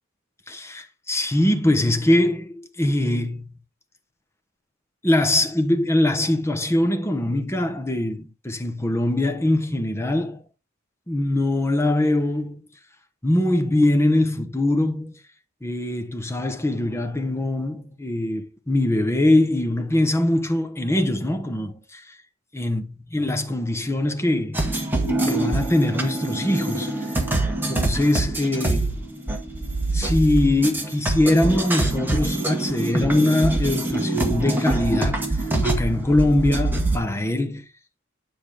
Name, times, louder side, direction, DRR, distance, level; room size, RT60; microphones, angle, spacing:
voice 1, 0.5-3.4 5.0-10.4 11.1-12.6 13.2-15.1 15.6-22.2 22.5-24.7 25.2-26.9 27.7-29.0 29.9-35.2 35.6-37.6, left 1 dB, 15° left, 1.1 m, -22 dB
sound 1, 24.5-37.0, right 2 dB, 10° right, 1.8 m, -24 dB
9.9 x 4.7 x 4.9 m
head